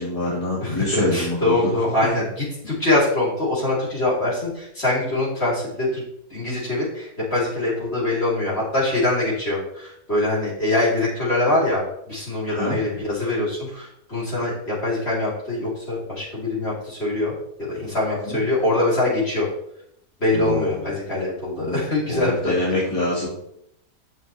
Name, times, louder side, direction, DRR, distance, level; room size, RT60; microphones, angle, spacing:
voice 1, 0.0-1.7 12.5-12.8 18.2-18.4 20.3-20.9 21.6-23.3, left 1 dB, 20° left, -8 dB, 2.9 m, -25 dB
voice 2, 0.6-6.0 6.3-17.3 17.7-19.5 20.2-22.6, left 2 dB, 40° left, -7 dB, 4.5 m, -23 dB
10.5 x 7.1 x 3.6 m, 0.76 s
omnidirectional pair, 1.7 m